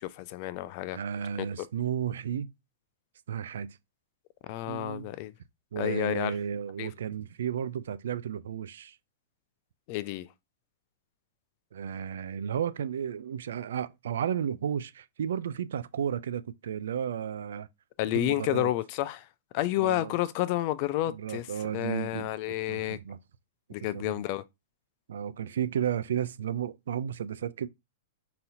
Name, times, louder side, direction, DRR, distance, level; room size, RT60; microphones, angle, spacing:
voice 1, 0.0-1.0 1.6-1.7 4.5-5.3 5.8-6.3 6.8-6.9 9.9-10.3 18.0-19.2 19.5-21.5 21.7-23.0 23.7-24.4, left 15 dB, 45° left, 0.3 m, -30 dB
voice 2, 0.9-2.5 3.3-3.8 4.7-5.1 5.7-9.0 11.7-17.7 18.1-18.7 19.8-20.2 21.1-23.2 23.9-24.2 25.1-27.7, right 8 dB, 75° right, 0.3 m, -33 dB
4.0 x 2.8 x 2.6 m
hypercardioid pair, 130°, 0 cm